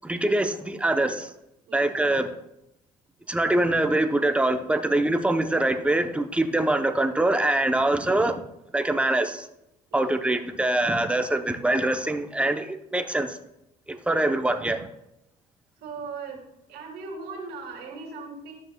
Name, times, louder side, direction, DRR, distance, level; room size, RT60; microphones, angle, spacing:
voice 1, 0.0-1.3 1.7-2.3 3.3-8.4 8.7-9.5 9.9-13.4 13.9-14.9, right 1 dB, 5° right, 6 dB, 0.7 m, -24 dB
voice 2, 15.8-16.4 16.7-18.5, right 4 dB, 75° right, -2 dB, 2.9 m, -38 dB
13.5 x 6.4 x 2.2 m, 0.84 s
cardioid pair, 110°, 17 cm